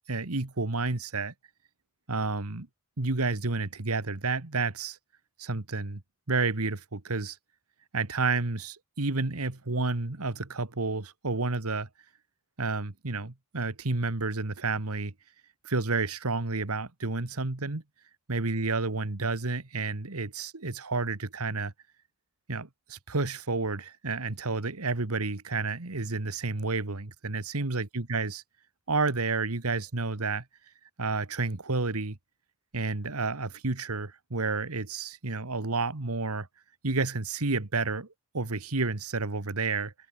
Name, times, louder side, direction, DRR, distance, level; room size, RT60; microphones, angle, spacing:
voice 1, 0.1-1.3 2.1-2.7 3.0-5.0 5.4-6.0 6.3-7.4 7.9-11.9 12.6-15.1 15.6-17.8 18.3-21.7 22.5-28.4 28.9-30.4 31.0-32.2 32.7-36.5 36.8-38.1 38.3-39.9, right 3 dB, 90° right, 1.7 m, -30 dB
head